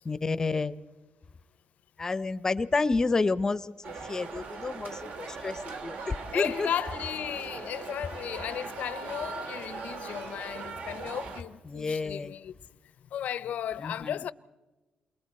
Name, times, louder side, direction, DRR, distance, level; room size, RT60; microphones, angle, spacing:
voice 1, 0.0-0.8 2.0-6.7 11.7-12.3 13.8-14.2, left 3 dB, 25° left, 0.6 m, -30 dB
sound 1, 3.8-11.4, right 4 dB, 70° right, 2.0 m, -40 dB
voice 2, 6.3-12.5 13.1-14.3, left 10 dB, 75° left, 0.6 m, -35 dB
29.0 x 23.0 x 4.3 m
wide cardioid pair, 150°, 3 cm